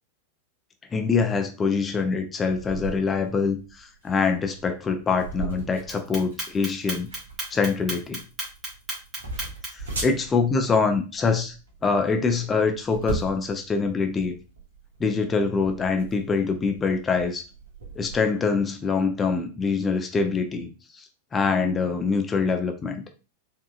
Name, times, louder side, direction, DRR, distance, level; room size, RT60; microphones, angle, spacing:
voice 1, 0.9-7.1 7.5-8.2 9.7-11.5 11.8-14.4 15.0-17.4 18.0-23.0, left 4 dB, 20° left, 5 dB, 0.6 m, -24 dB
sound 1, 2.5-18.2, right 3 dB, 70° right, 1.3 m, -39 dB
Clock, 5.9-9.9, right 1 dB, 25° right, 1.8 m, -33 dB
4.6 x 2.8 x 2.4 m, 0.33 s
figure-of-eight pair, 90°, 0 cm